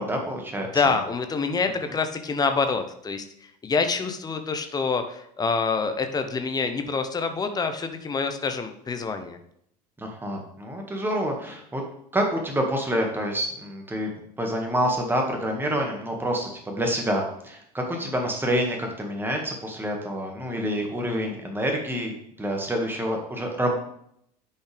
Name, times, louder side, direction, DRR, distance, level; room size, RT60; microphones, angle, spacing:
voice 1, 0.0-1.0 10.0-11.8 12.1-14.1 14.4-23.8, equal, 10° right, 2 dB, 1.8 m, -27 dB
voice 2, 0.7-3.2 3.6-9.4, left 4 dB, 20° left, 7 dB, 0.9 m, -26 dB
10.0 x 5.6 x 3.4 m, 0.70 s
figure-of-eight pair, 65°, 21 cm